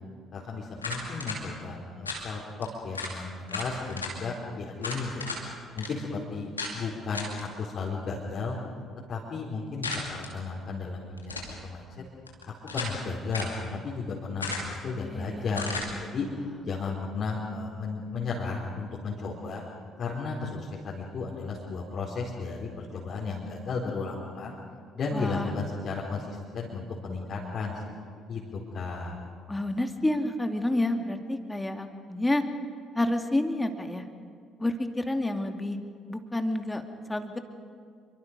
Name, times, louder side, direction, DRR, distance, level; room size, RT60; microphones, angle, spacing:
voice 1, 0.3-5.4 5.8-6.5 6.7-8.6 9.1-12.0 12.7-15.7 16.0-16.3 16.6-19.6 20.0-24.6 24.9-27.8 28.3-29.2, left 4 dB, 45° left, -5 dB, 4.3 m, -34 dB
sound 1, 0.8-1.4 2.0-2.2 2.6-2.7 2.9-3.1 3.5-4.1 4.8-5.4 5.8-5.9 6.6-6.7 7.1-7.4 9.8-10.3 11.2-11.6 12.3-13.0 13.3-13.6 14.4-14.8 15.5-15.9, left 3 dB, 90° left, 2.6 m, -34 dB
voice 2, 15.0-15.8 25.1-25.5 29.5-32.4 32.9-34.0 34.6-35.8 36.1-36.8 37.1-37.4, left 1 dB, 15° left, 5 dB, 2.5 m, -29 dB
28.0 x 24.0 x 5.3 m, 2.2 s
figure-of-eight pair, 50°, 0 cm